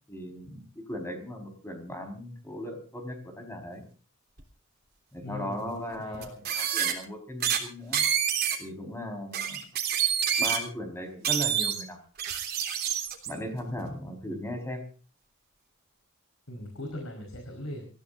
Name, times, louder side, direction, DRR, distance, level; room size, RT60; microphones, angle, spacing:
voice 1, 0.1-3.8 5.1-8.0 8.6-9.6 10.4-12.0 13.3-14.8, equal, 10° left, 5 dB, 4.7 m, -37 dB
sound 1, 4.4-4.5 6.1-6.9 7.4-7.6 7.9-8.6 9.3-10.6 11.2-11.8 12.2-13.3, right 9 dB, 45° right, 3.4 m, -27 dB
voice 2, 5.2-5.7 6.0-6.4 14.3-14.5 16.5-17.9, left 1 dB, 75° left, 3 dB, 4.7 m, -40 dB
28.0 x 15.5 x 2.6 m, 0.37 s
head